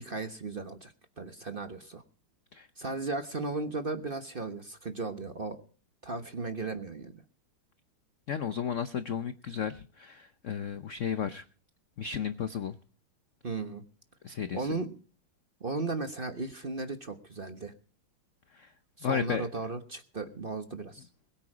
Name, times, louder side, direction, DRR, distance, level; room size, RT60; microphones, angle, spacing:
voice 1, 0.0-2.0 2.8-5.6 6.0-7.2 13.4-13.8 14.5-14.9 15.6-17.7 19.0-21.1, right 3 dB, 35° right, 8 dB, 1.0 m, -36 dB
voice 2, 8.3-11.4 12.0-12.8 14.2-14.8 18.5-18.7 19.0-19.5, left 7 dB, 80° left, 11 dB, 0.6 m, -33 dB
21.5 x 8.9 x 5.0 m, 0.42 s
omnidirectional pair, 2.4 m